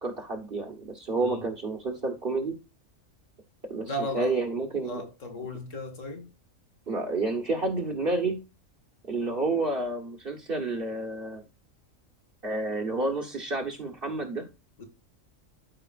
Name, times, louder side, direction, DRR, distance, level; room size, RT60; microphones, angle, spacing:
voice 1, 0.0-2.6 3.7-5.0 6.9-8.4 9.1-11.4 12.4-14.5, right 2 dB, 45° right, 1.6 m, -30 dB
voice 2, 3.8-4.4 4.8-6.3 14.8-14.9, left 1 dB, 70° left, 2.3 m, -35 dB
12.5 x 5.1 x 2.5 m
omnidirectional pair, 1.3 m